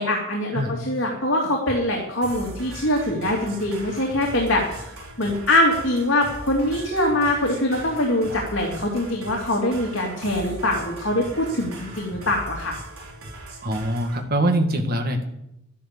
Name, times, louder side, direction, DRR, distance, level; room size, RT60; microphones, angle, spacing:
voice 1, 0.0-4.9 5.2-12.7, left 1 dB, 60° left, -1 dB, 2.7 m, -23 dB
sound 1, 2.2-14.2, right 1 dB, 85° right, 4.7 m, -39 dB
voice 2, 13.6-15.3, right 1 dB, 45° right, 4 dB, 2.0 m, -23 dB
12.0 x 11.0 x 6.8 m, 0.83 s
head